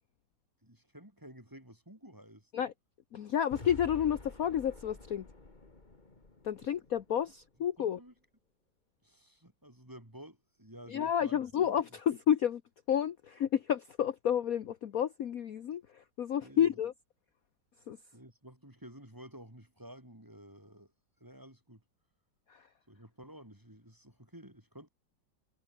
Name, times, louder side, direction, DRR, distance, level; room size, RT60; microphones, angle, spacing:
voice 1, 0.6-2.5 7.8-8.1 9.0-11.4 16.4-16.7 18.1-20.9 21.2-21.8 22.9-24.9, equal, 10° right, 4.2 m, -52 dB
voice 2, 3.1-5.3 6.4-8.0 10.9-12.6 12.9-16.9 17.9-18.0 22.5-22.7, left 9 dB, 55° left, 1.3 m, -30 dB
sound 1, 3.5-7.7, left 2 dB, 25° left, 2.5 m, -50 dB
omnidirectional pair, 2.0 m